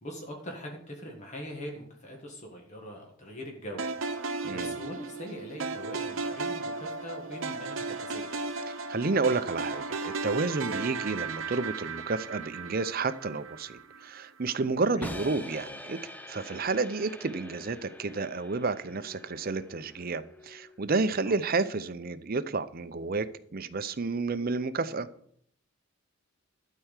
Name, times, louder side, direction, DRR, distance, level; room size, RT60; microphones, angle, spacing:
voice 1, 0.0-3.8 4.1-8.5 14.9-15.1 21.2-21.4, equal, 35° left, 1.6 m, -42 dB
sound 1, 3.8-14.0, right 4 dB, 70° right, 1.0 m, -35 dB
voice 2, 8.7-16.0 16.3-25.1, right 3 dB, 45° right, 0.6 m, -31 dB
sound 2, 15.0-21.0, left 1 dB, 10° left, 0.7 m, -45 dB
12.5 x 4.6 x 8.2 m
head